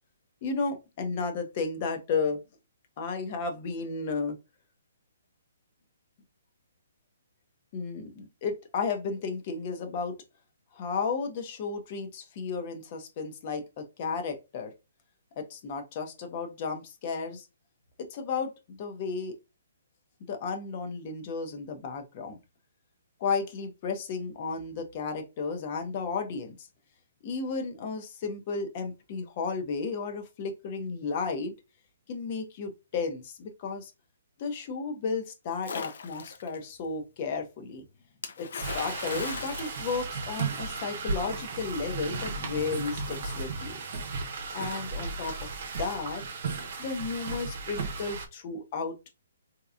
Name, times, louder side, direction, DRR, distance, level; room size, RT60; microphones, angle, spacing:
voice 1, 0.4-2.4 3.0-4.4 7.7-10.2 10.7-14.7 15.4-17.5 18.0-19.3 20.3-22.4 23.2-26.7 27.2-31.6 32.1-33.9 34.4-37.8 38.4-43.8 44.5-45.5 45.8-46.2 46.8-49.0, left 4 dB, 40° left, 0.9 m, -33 dB
Splash splatter, 35.6-36.6 38.2-40.7, left 5 dB, 65° left, 0.7 m, -39 dB
sound 1, 38.6-48.3, right 4 dB, 55° right, 0.8 m, -35 dB
3.8 x 2.9 x 2.4 m
hypercardioid pair, 145°, 0 cm